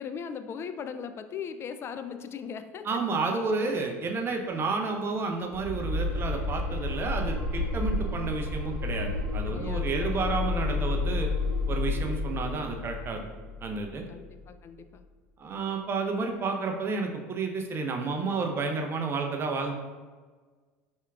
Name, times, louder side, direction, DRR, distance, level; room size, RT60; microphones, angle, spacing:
voice 1, 0.0-2.9 9.4-10.4 14.1-15.0, left 7 dB, 35° left, 9 dB, 0.3 m, -39 dB
voice 2, 2.8-11.3 11.7-13.2 13.6-14.0 15.4-19.7, right 4 dB, 30° right, 3 dB, 0.6 m, -31 dB
sound 1, 5.5-14.4, left 3 dB, 65° left, 1.3 m, -31 dB
4.4 x 3.5 x 2.3 m, 1.4 s
hypercardioid pair, 80°, 7 cm